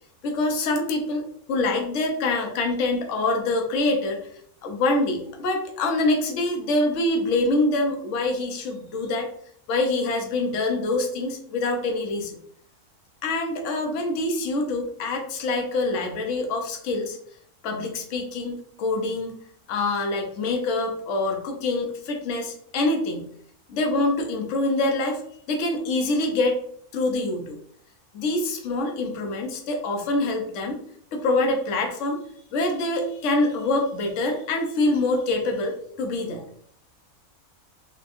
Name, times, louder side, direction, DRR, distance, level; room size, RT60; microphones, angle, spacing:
voice 1, 0.2-4.2 4.6-9.3 9.7-12.4 13.2-17.2 17.6-19.3 19.7-23.2 23.7-25.2 25.5-26.6 26.9-27.6 28.1-30.8 31.1-32.2 32.5-36.4, left 2 dB, 60° left, 2 dB, 1.1 m, -25 dB
4.2 x 3.0 x 2.6 m, 0.64 s
omnidirectional pair, 1.6 m